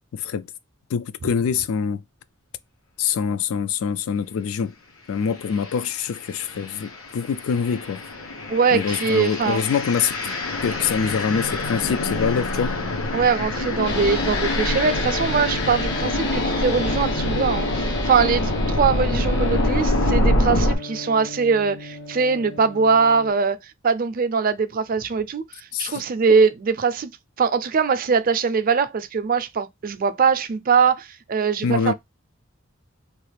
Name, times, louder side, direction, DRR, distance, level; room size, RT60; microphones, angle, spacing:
voice 1, 0.1-0.5 0.9-2.0 3.0-4.7 5.1-8.0 8.7-10.3 10.6-12.8 25.7-26.0 31.6-31.9, left 6 dB, 75° left, 0.3 m, -25 dB
sound 1, 5.5-5.7 6.3-20.8, left 1 dB, 90° left, 1.0 m, -25 dB
voice 2, 8.5-9.6 13.1-23.6 23.8-25.4 25.8-27.1 27.4-31.9, right 5 dB, 40° right, 0.4 m, -21 dB
sound 2, 13.8-23.3, left 2 dB, 55° left, 0.8 m, -33 dB
3.0 x 2.4 x 3.2 m
head